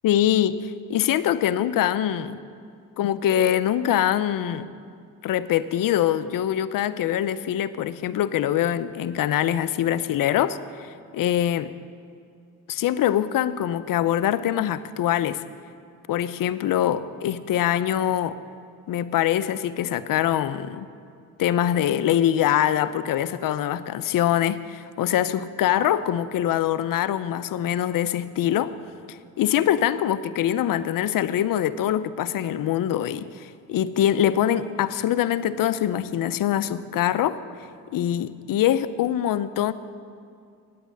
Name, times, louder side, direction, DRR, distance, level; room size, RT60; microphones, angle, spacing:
voice 1, 0.0-2.4 3.0-4.7 5.2-11.7 12.7-15.4 16.1-18.4 18.9-20.9 21.4-28.7 29.1-37.4 37.9-39.7, left 11 dB, 65° left, 14 dB, 0.6 m, -24 dB
9.2 x 8.8 x 9.5 m, 2.3 s
cardioid pair, 75°, 37 cm